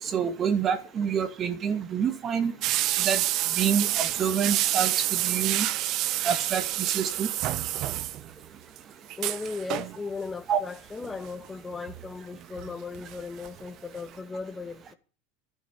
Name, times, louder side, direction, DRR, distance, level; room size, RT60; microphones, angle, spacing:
voice 1, 0.0-2.5 3.0-3.2 3.6-5.7 6.2-7.3 10.5-10.6, right 7 dB, 35° right, 2.4 m, -27 dB
sound 1, 2.6-8.5 8.8-8.9 9.1-10.0 11.0-11.3 11.9-13.2 13.4-13.5 13.9-14.0, right 15 dB, 50° right, 0.9 m, -28 dB
voice 2, 9.2-14.9, left 4 dB, 15° left, 1.3 m, -37 dB
11.5 x 11.5 x 9.8 m
supercardioid pair, 120°, 0 cm